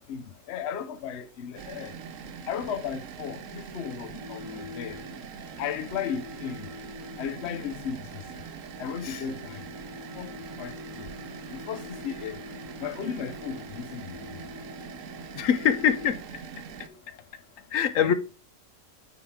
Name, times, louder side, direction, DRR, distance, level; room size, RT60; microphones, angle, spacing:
voice 1, 0.0-1.9 2.5-5.0 5.6-6.7 7.2-8.2 8.8-9.6 10.2-10.3 10.6-11.1 11.5-12.4 12.8-14.2 18.0-18.1, left 8 dB, 60° left, 0.9 m, -35 dB
sound 1, 1.6-16.9, right 7 dB, 75° right, 1.1 m, -42 dB
sound 2, 4.2-16.1, left 5 dB, 10° right, 2.3 m, -46 dB
voice 2, 15.3-16.2 17.7-18.1, left 8 dB, 90° left, 1.1 m, -24 dB
9.1 x 4.0 x 4.6 m
omnidirectional pair, 1.3 m